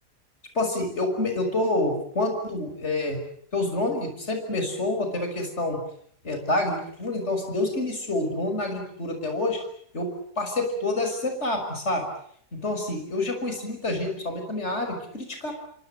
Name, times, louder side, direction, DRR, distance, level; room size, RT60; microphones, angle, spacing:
voice 1, 0.5-3.2 3.5-5.8 6.2-9.6 9.9-10.1 10.4-12.1 12.5-15.5, left 2 dB, 40° left, 5 dB, 6.4 m, -27 dB
28.5 x 23.5 x 7.8 m, 0.64 s
omnidirectional pair, 1.8 m